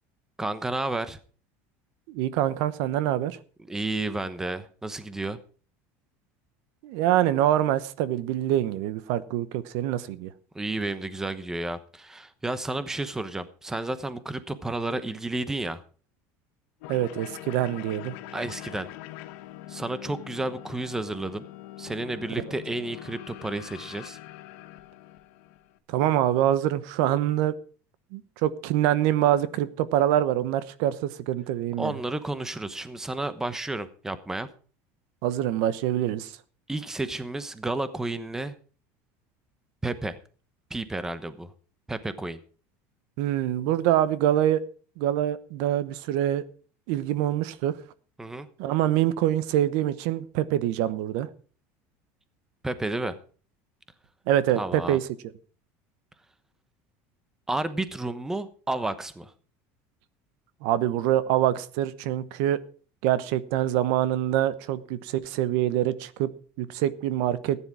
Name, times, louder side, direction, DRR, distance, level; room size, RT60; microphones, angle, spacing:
voice 1, 0.4-1.2 3.7-5.4 10.5-15.8 18.3-18.9 19.7-21.5 21.8-24.2 31.8-34.5 36.7-38.5 39.8-40.2 40.7-41.5 41.9-42.4 48.2-48.5 52.6-53.2 54.6-55.0 57.5-59.3, right 2 dB, 5° right, 13 dB, 1.0 m, -31 dB
voice 2, 2.1-3.4 6.8-10.3 16.9-18.1 25.9-27.6 28.1-32.0 35.2-36.3 43.2-44.6 45.0-46.4 46.9-47.8 48.6-51.3 54.3-55.0 60.6-62.6 63.0-66.3 66.6-67.6, right 12 dB, 65° right, 15 dB, 1.0 m, -25 dB
sound 1, 16.8-25.8, left 15 dB, 75° left, 1.2 m, -43 dB
14.5 x 10.0 x 4.8 m, 0.41 s
cardioid pair, 145°, 7 cm